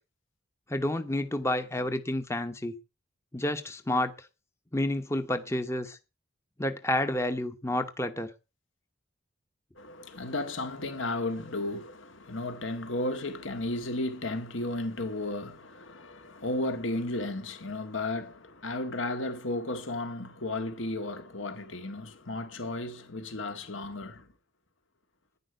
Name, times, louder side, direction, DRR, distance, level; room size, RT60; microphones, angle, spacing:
voice 1, 0.7-2.7 3.3-4.3 4.7-6.0 6.6-8.3, left 1 dB, 15° left, 0.9 m, -30 dB
voice 2, 9.8-24.3, left 2 dB, 70° left, 1.9 m, -34 dB
10.5 x 10.5 x 8.0 m
head